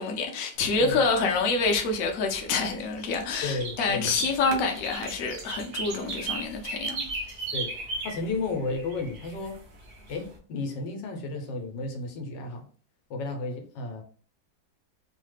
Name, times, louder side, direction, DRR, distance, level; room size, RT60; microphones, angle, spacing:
voice 1, 0.0-7.1, left 4 dB, 65° left, 0.8 m, -27 dB
sound 1, 0.6-10.3, right 3 dB, 55° right, 0.8 m, -37 dB
voice 2, 3.4-4.2 7.5-9.6 10.1-12.7 13.1-14.0, left 3 dB, 80° left, 1.3 m, -33 dB
3.1 x 2.1 x 3.2 m
omnidirectional pair, 1.9 m